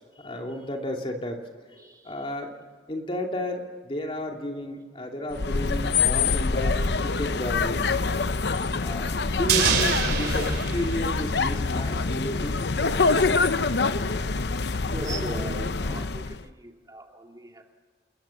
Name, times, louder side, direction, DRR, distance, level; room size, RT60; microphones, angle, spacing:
voice 1, 0.2-1.4 2.0-2.6 2.9-7.8 8.8-12.8, left 1 dB, 30° left, 2 dB, 2.7 m, -32 dB
voice 2, 1.8-2.1 14.9-17.6, right 1 dB, 20° right, 3 dB, 2.2 m, -38 dB
sound 1, 5.3-16.4, left 4 dB, 65° left, 0.8 m, -25 dB
sound 2, 9.5-11.9 12.2-12.3, right 6 dB, 65° right, 3.4 m, -26 dB
29.5 x 21.0 x 7.1 m, 1.5 s
head